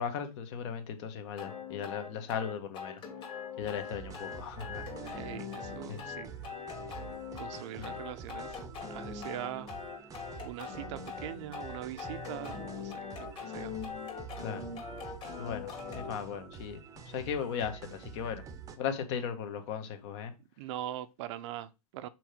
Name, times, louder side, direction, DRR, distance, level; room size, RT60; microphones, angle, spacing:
voice 1, 0.0-3.0 3.6-5.2 5.9-6.0 7.8-8.0 14.4-14.6 15.4-16.8 17.1-18.4 18.8-20.3, left 7 dB, 45° left, 1.6 m, -37 dB
sound 1, 1.4-16.1, left 6 dB, 25° left, 2.2 m, -42 dB
sound 2, 3.6-18.8, right 6 dB, 15° right, 0.9 m, -47 dB
voice 2, 5.1-6.3 7.3-8.6 8.9-9.7 10.4-13.7 20.6-22.1, right 12 dB, 45° right, 0.7 m, -42 dB
6.2 x 4.6 x 5.1 m
hypercardioid pair, 130°, 20 cm